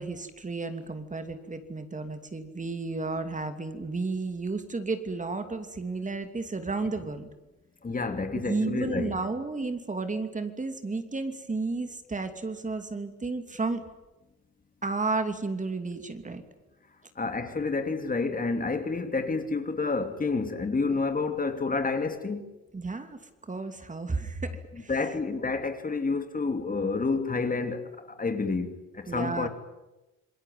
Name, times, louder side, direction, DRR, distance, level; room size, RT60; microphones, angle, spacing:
voice 1, 0.0-7.3 8.4-13.8 14.8-16.4 22.7-24.9 29.1-29.5, right 3 dB, 25° right, 2.7 m, -32 dB
voice 2, 7.8-9.1 17.2-22.4 24.9-29.5, left 4 dB, 30° left, 2.8 m, -29 dB
27.0 x 21.5 x 9.4 m
cardioid pair, 90°, 30 cm